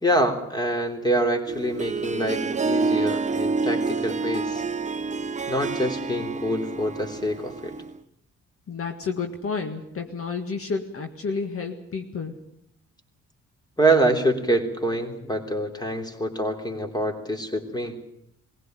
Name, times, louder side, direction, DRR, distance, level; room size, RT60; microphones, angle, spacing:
voice 1, 0.0-4.6 5.5-7.7 13.8-18.0, right 1 dB, 15° left, 5 dB, 3.4 m, -25 dB
Harp, 1.5-8.0, right 4 dB, 25° right, 0.8 m, -28 dB
voice 2, 8.7-12.4, left 5 dB, 45° left, 5 dB, 1.9 m, -30 dB
21.5 x 16.0 x 9.3 m, 0.76 s
cardioid pair, 90°, 30 cm